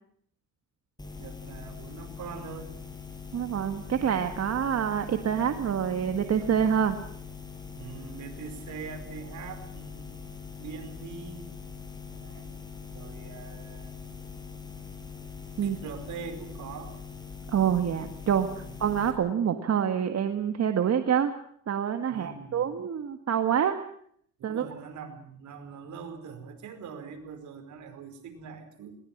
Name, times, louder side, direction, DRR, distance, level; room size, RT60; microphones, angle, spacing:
sound 1, 1.0-19.1, left 6 dB, 15° left, 7.3 m, -42 dB
voice 1, 1.2-2.7 7.7-10.2 10.6-11.5 12.1-13.9 15.6-16.9 18.6-18.7 22.1-22.7 24.4-29.0, right 6 dB, 75° right, 6 dB, 4.9 m, -43 dB
voice 2, 3.3-7.0 15.6-15.8 17.5-21.3 21.7-23.8 24.4-24.7, right 8 dB, 55° right, 7 dB, 1.8 m, -26 dB
21.5 x 20.0 x 7.3 m, 0.64 s
cardioid pair, 90°, 30 cm